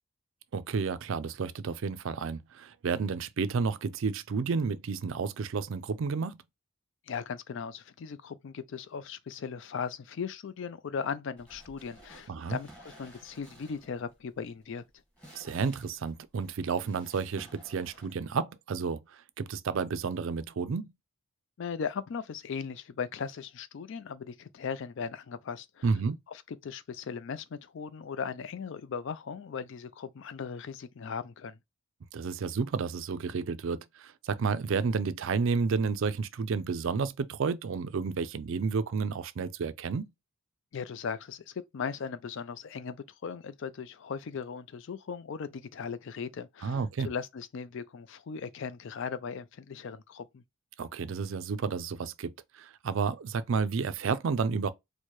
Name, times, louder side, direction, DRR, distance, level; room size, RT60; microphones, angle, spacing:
voice 1, 0.5-6.4 12.3-12.6 15.3-20.9 25.8-26.2 32.1-40.1 46.6-47.1 50.8-54.7, right 5 dB, 60° right, 0.4 m, -31 dB
voice 2, 7.1-14.8 21.6-25.9 26.5-31.6 40.7-50.4, left 6 dB, 55° left, 0.4 m, -38 dB
sound 1, 11.4-18.1, right 1 dB, 5° left, 1.4 m, -55 dB
4.5 x 2.1 x 3.0 m
head